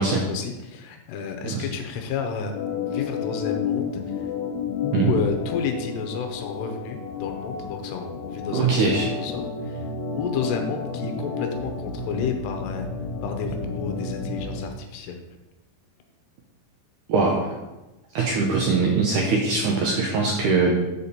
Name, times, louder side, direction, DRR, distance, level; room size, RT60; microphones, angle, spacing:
voice 1, 0.0-2.5 2.9-4.3 4.8-8.8 9.1-9.8 10.2-12.9 13.2-15.2, left 6 dB, 85° left, 5 dB, 2.9 m, -31 dB
Organ, 2.5-14.7, left 5 dB, 70° left, 2.6 m, -31 dB
voice 2, 8.5-9.1 17.1-17.6 18.2-20.7, right 4 dB, 80° right, -1 dB, 1.8 m, -22 dB
7.3 x 4.3 x 6.7 m, 1.0 s
omnidirectional pair, 4.7 m